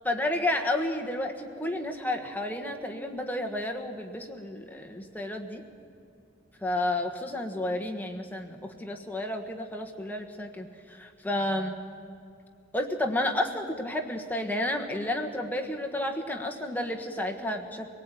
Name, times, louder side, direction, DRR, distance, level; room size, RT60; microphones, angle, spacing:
voice 1, 0.0-5.6 6.6-11.8 12.7-17.9, left 1 dB, 10° left, 3 dB, 1.3 m, -31 dB
24.5 x 18.5 x 9.1 m, 2.4 s
head